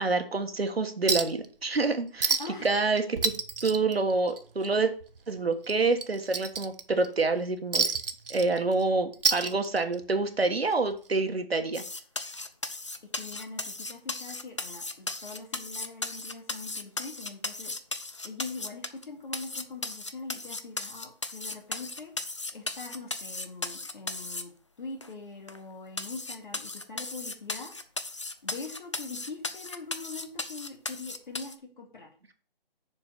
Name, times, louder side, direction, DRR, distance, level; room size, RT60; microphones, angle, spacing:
voice 1, 0.0-2.4 2.6-3.3 3.6-4.9 5.3-7.9 8.3-11.8, right 3 dB, 85° right, 7 dB, 1.4 m, -27 dB
Chink clink, 1.1-1.5 1.8-1.9 2.2-2.7 3.0-4.7 5.0-5.2 5.6-7.1 7.7-8.8 9.1-10.1 11.2-11.3, right 4 dB, 65° right, 0.9 m, -29 dB
voice 2, 2.4-2.7 13.1-17.7 18.2-22.1 22.5-24.5 24.8-27.7 28.4-32.1, left 3 dB, 55° left, 1 dB, 2.6 m, -42 dB
sound 1, 11.7-19.0 19.3-24.4 25.0-25.1 25.5-25.6 26.0-31.6, left 2 dB, 30° left, 0.5 m, -36 dB
7.0 x 4.8 x 5.9 m, 0.42 s
figure-of-eight pair, 160°, 30 cm